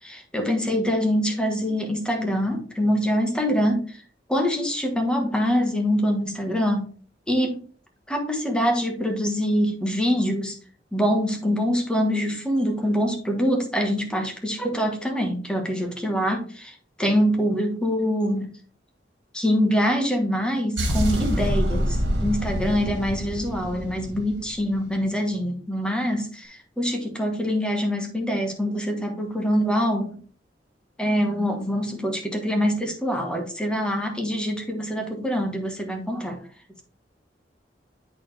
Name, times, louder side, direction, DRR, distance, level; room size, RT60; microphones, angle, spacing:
voice 1, 0.1-4.0 4.3-6.9 7.3-7.6 8.1-10.5 10.9-18.6 19.3-26.3 26.8-30.2 31.0-36.4, equal, 5° left, 2 dB, 1.3 m, -24 dB
sound 1, 20.8-24.9, equal, 80° right, 2.0 m, -26 dB
8.5 x 4.1 x 3.3 m, 0.41 s
head